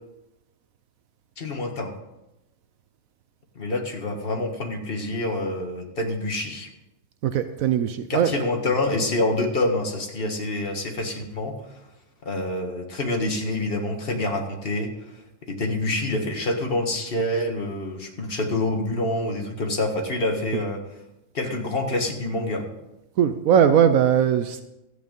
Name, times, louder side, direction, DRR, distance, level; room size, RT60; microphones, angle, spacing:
voice 1, 1.4-1.9 3.5-6.7 8.1-11.8 12.2-20.8 21.3-22.7, left 2 dB, 40° left, 2 dB, 1.8 m, -27 dB
voice 2, 7.2-8.3 20.5-20.6 23.2-24.6, right 8 dB, 75° right, 10 dB, 1.0 m, -20 dB
13.5 x 8.4 x 5.3 m, 0.94 s
omnidirectional pair, 1.5 m